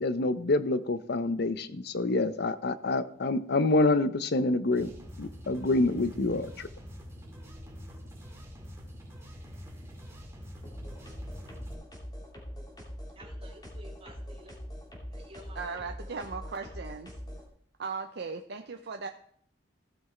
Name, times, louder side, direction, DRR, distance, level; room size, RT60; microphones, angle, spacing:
voice 1, 0.0-4.9 5.2-6.7, left 2 dB, 60° left, 13 dB, 0.7 m, -27 dB
sound 1, 4.7-11.7, equal, 15° right, 2.0 m, -45 dB
sound 2, 10.6-17.4, equal, 20° left, 2.7 m, -42 dB
voice 2, 13.1-15.8, right 1 dB, 30° right, 1 dB, 2.0 m, -53 dB
voice 3, 15.5-17.1 17.8-19.1, right 4 dB, 60° right, 5 dB, 0.6 m, -37 dB
15.5 x 6.0 x 4.4 m, 0.62 s
head